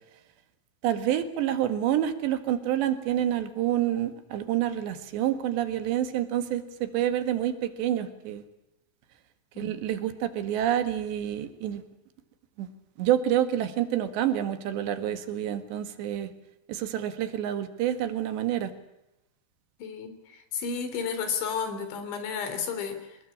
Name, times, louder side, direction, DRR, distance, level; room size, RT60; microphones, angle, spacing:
voice 1, 0.8-8.4 9.6-11.8 12.6-12.7 13.0-16.3 16.7-18.7, right 11 dB, 75° right, 10 dB, 3.8 m, -28 dB
voice 2, 19.8-20.1 20.5-23.2, left 6 dB, 80° left, 9 dB, 5.7 m, -32 dB
26.0 x 20.0 x 8.7 m, 0.91 s
omnidirectional pair, 5.2 m